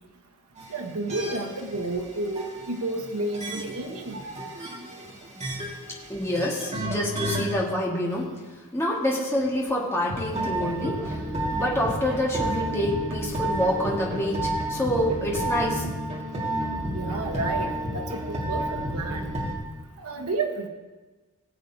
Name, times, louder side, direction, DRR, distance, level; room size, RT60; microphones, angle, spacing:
sound 1, 0.6-7.5 8.1-8.2 10.1-19.5, right 1 dB, 30° right, 1.8 m, -31 dB
voice 1, 0.7-4.3 16.9-19.3 20.0-20.7, right 2 dB, 80° right, 3 dB, 1.1 m, -31 dB
voice 2, 6.1-8.3 8.7-11.2 11.5-15.9, left 1 dB, 10° left, -4 dB, 1.5 m, -27 dB
17.5 x 7.9 x 2.7 m, 1.3 s
head